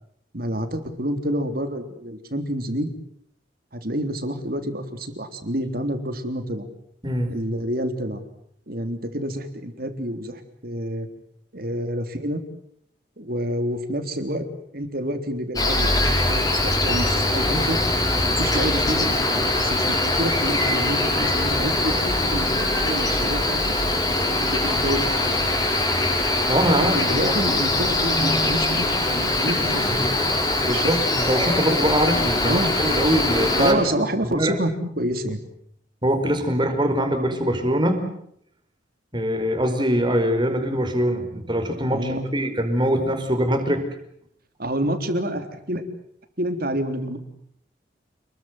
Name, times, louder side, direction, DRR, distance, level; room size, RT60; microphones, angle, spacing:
voice 1, 0.3-2.9 3.7-6.7 7.3-8.2 8.7-11.1 11.5-12.4 13.2-14.5 14.7-15.9 16.2-17.8 18.3-23.8 24.3-25.5 26.8-30.9 32.4-32.8 33.6-35.4 41.9-42.3 44.6-45.8 46.4-47.2, equal, 55° right, 8 dB, 3.7 m, -28 dB
Cricket, 15.6-33.7, left 2 dB, 20° left, 6.5 m, -22 dB
voice 2, 26.5-27.3 30.6-34.5 36.0-38.1 39.1-43.8, equal, 25° right, 6 dB, 5.0 m, -23 dB
29.5 x 22.0 x 8.1 m, 0.70 s
head